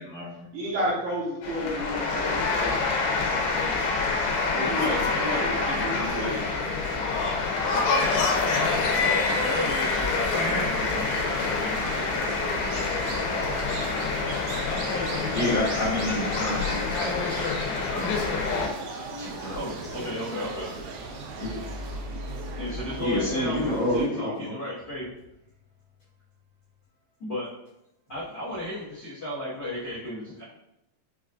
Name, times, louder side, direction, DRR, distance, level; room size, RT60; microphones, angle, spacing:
voice 1, 0.0-0.4 15.3-17.5 17.9-18.4 19.2-19.6 19.9-20.1 21.4-21.6 23.0-24.6, left 1 dB, 55° left, -9 dB, 1.8 m, -29 dB
voice 2, 0.5-2.9 4.5-7.6, equal, 70° right, -5 dB, 2.2 m, -32 dB
sound 1, 1.4-18.7, left 4 dB, 90° left, 2.4 m, -26 dB
voice 3, 8.7-11.7 17.9-18.1 19.5-20.7 22.5-25.1 27.2-27.5 28.1-30.4, left 1 dB, 70° left, -11 dB, 1.0 m, -34 dB
sound 2, 10.2-24.1, right 3 dB, 85° right, 2.4 m, -37 dB
6.0 x 2.4 x 2.4 m, 0.82 s
omnidirectional pair, 4.0 m